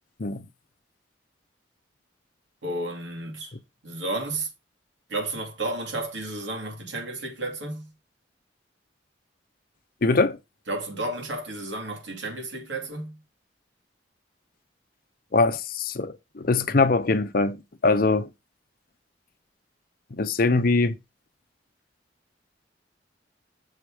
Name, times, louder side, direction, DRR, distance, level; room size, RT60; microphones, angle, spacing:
voice 1, 2.6-3.5 3.8-4.5 5.1-7.9 10.7-13.2, right 2 dB, 80° right, 2.5 m, -32 dB
voice 2, 10.0-10.4 15.3-18.3 20.1-21.0, left 3 dB, 50° left, 0.7 m, -22 dB
6.5 x 4.8 x 4.9 m
head